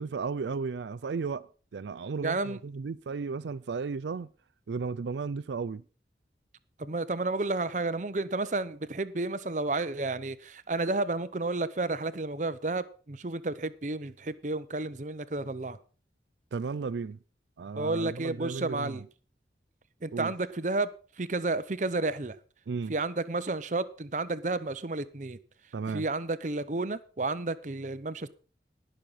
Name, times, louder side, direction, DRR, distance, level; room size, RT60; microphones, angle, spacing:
voice 1, 0.0-4.3 4.7-5.8 16.5-17.2 17.6-19.0 20.1-20.3 22.7-22.9 25.7-26.1, right 5 dB, 85° right, 0.4 m, -34 dB
voice 2, 2.2-2.6 6.8-15.8 17.8-19.0 20.0-20.9 21.2-22.4 22.9-25.4 25.9-28.3, right 2 dB, 45° right, 0.8 m, -31 dB
19.5 x 6.5 x 4.0 m
head